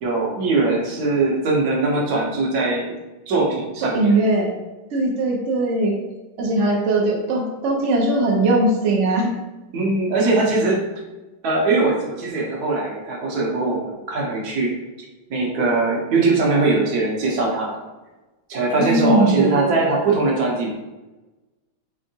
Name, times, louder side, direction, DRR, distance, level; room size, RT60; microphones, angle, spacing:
voice 1, 0.0-2.9 3.3-4.2 9.7-10.8 11.4-14.7 15.3-17.8 18.5-20.7, right 3 dB, 60° right, -2 dB, 1.1 m, -21 dB
voice 2, 3.8-4.5 4.9-5.9 6.4-9.3 18.8-19.8, right 2 dB, 85° right, -1 dB, 0.6 m, -20 dB
3.6 x 3.3 x 2.7 m, 1.1 s
omnidirectional pair, 2.2 m